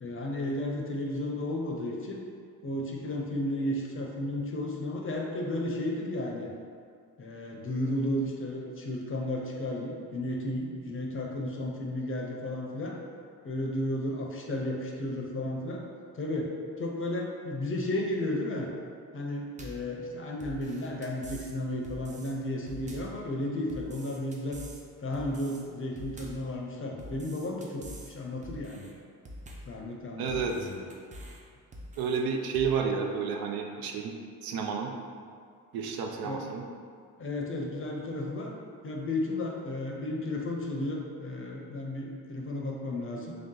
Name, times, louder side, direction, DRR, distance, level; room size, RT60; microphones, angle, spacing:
voice 1, 0.0-2.2 2.6-6.5 7.2-13.0 13.4-15.8 16.1-16.5 16.8-18.7 19.1-24.6 25.0-28.9 29.7-30.9 36.2-36.5 37.2-38.5 38.8-43.3, left 1 dB, 35° left, 0 dB, 0.6 m, -33 dB
sound 1, 19.6-19.9 20.4-21.5 21.8-22.3 22.7-23.2 23.7-24.8 25.1-25.6 26.0-26.5 27.0-28.1 28.4-28.9 29.3-29.8 30.3-31.4 31.7-32.2 32.5-32.7, equal, 20° right, 0.5 m, -45 dB
voice 2, 30.2-30.5 32.0-34.1 34.4-34.9 35.7-36.6, right 6 dB, 75° right, 2 dB, 0.5 m, -30 dB
3.3 x 2.8 x 3.7 m, 2.2 s
cardioid pair, 105°, 36 cm